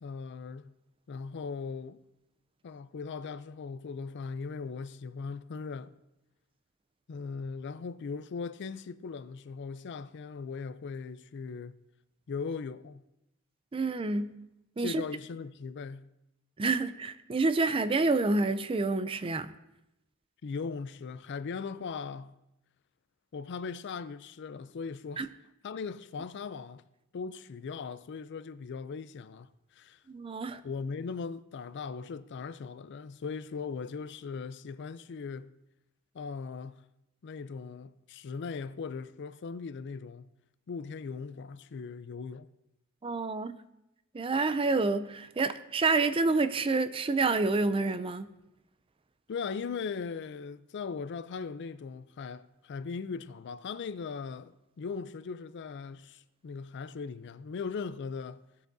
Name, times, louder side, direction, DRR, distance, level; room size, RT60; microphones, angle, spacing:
voice 1, 0.0-0.7 1.1-2.0 2.6-5.9 7.1-11.7 12.3-13.0 14.8-16.1 20.4-22.3 23.3-25.3 25.6-26.8 27.1-30.0 30.6-35.5 36.1-36.8 37.2-40.3 40.7-42.5 49.3-58.4, left 5 dB, 55° left, 0.4 m, -39 dB
voice 2, 13.7-14.3 14.8-15.0 16.6-19.5 25.2-25.3 30.1-30.6 43.0-43.6 44.1-48.3, right 3 dB, 25° right, 0.4 m, -28 dB
17.0 x 8.4 x 2.6 m
head